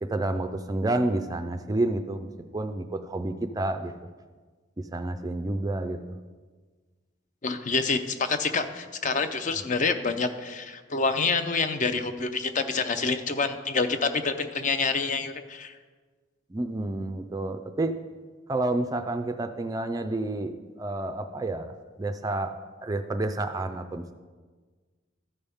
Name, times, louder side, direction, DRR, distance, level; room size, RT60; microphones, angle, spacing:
voice 1, 0.0-3.9 4.8-6.2 9.6-9.7 16.5-17.9 18.5-21.7 22.0-22.5 22.8-24.1, right 2 dB, 20° right, 8 dB, 0.3 m, -29 dB
voice 2, 7.4-15.7, left 4 dB, 40° left, 9 dB, 0.5 m, -27 dB
13.5 x 5.5 x 3.5 m, 1.4 s
head